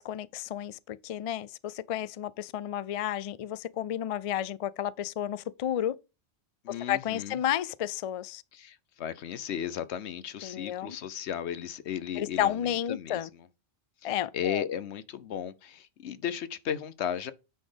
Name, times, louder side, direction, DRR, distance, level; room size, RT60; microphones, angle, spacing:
voice 1, 0.0-6.0 6.9-8.4 10.4-11.0 12.2-13.3 14.0-14.6, left 11 dB, 55° left, 0.3 m, -32 dB
voice 2, 6.6-7.4 8.5-13.5 14.0-17.3, left 9 dB, 90° left, 1.0 m, -35 dB
9.3 x 4.2 x 5.0 m
omnidirectional pair, 1.1 m